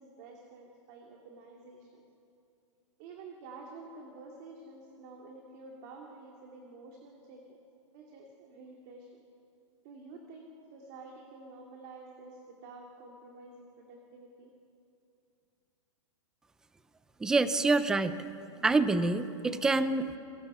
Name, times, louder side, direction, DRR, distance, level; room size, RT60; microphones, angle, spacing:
voice 1, 0.0-2.0 3.0-7.6 7.9-9.1 9.8-14.5, right 3 dB, 30° right, 0 dB, 2.6 m, -50 dB
voice 2, 17.2-18.2 18.6-20.2, right 3 dB, 5° right, 12 dB, 0.5 m, -26 dB
29.5 x 22.5 x 5.6 m, 2.6 s
hypercardioid pair, 175°, 16 cm